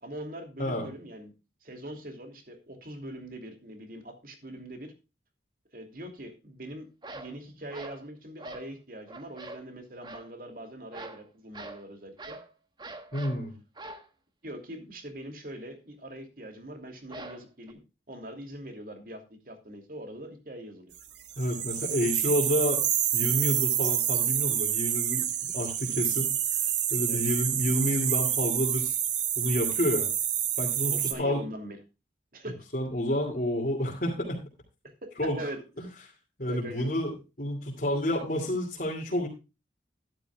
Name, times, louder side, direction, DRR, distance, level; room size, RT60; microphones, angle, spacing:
voice 1, 0.0-1.3 1.6-4.9 5.7-6.9 7.1-12.4 14.4-17.8 18.1-20.9 27.1-27.2 30.9-31.8 32.3-32.6 35.0-35.6 36.5-36.9, right 1 dB, 50° right, 5 dB, 2.8 m, -42 dB
sound 1, 7.0-7.4 7.7-8.0 8.4-8.7 9.1-9.7 10.0-10.3 10.9-11.2 11.5-11.8 12.2-12.5 12.8-13.4 13.8-14.1 17.1-17.7, right 2 dB, 25° right, 1.3 m, -43 dB
voice 2, 13.1-13.5 21.4-22.8 23.1-26.3 26.6-29.0 29.4-30.1 30.6-31.4 32.7-34.4 35.2-35.4 36.4-39.3, equal, 50° left, -3 dB, 2.7 m, -29 dB
sound 2, 21.3-31.1, right 10 dB, 80° right, 1.9 m, -28 dB
12.5 x 12.0 x 2.3 m, 0.29 s
head